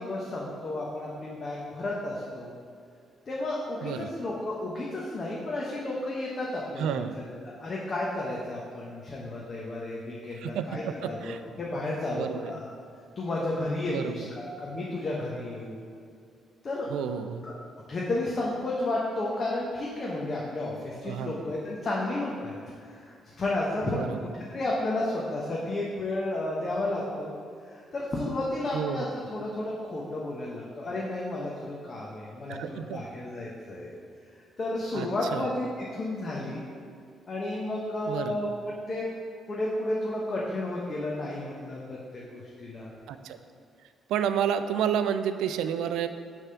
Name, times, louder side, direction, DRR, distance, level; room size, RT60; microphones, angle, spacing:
voice 1, 0.0-2.5 3.3-7.0 7.4-12.7 13.2-15.8 16.6-16.9 17.4-17.5 17.9-27.3 27.7-33.9 34.6-36.6 37.3-39.1 39.5-42.9, left 2 dB, 40° left, -4 dB, 0.9 m, -32 dB
voice 2, 6.8-7.2 10.3-11.4 12.1-12.5 13.9-14.3 16.9-17.4 21.0-21.4 23.8-24.2 28.7-29.3 32.5-33.0 34.9-35.5 38.1-38.4 43.1-43.4 44.1-46.1, right 8 dB, 90° right, 10 dB, 0.3 m, -30 dB
6.6 x 3.5 x 5.6 m, 2.3 s
cardioid pair, 90°, 0 cm